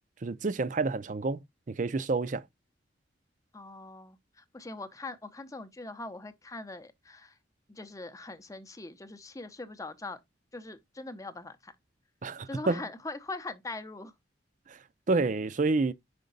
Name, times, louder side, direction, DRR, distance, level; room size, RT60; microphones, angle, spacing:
voice 1, 0.2-1.4 1.7-2.4 12.2-12.8 14.7-14.8 15.1-15.9, right 3 dB, 45° right, 0.5 m, -28 dB
voice 2, 3.5-7.4 7.7-10.2 10.5-11.7 12.5-14.1, left 2 dB, 20° left, 0.7 m, -42 dB
5.5 x 5.2 x 3.9 m
head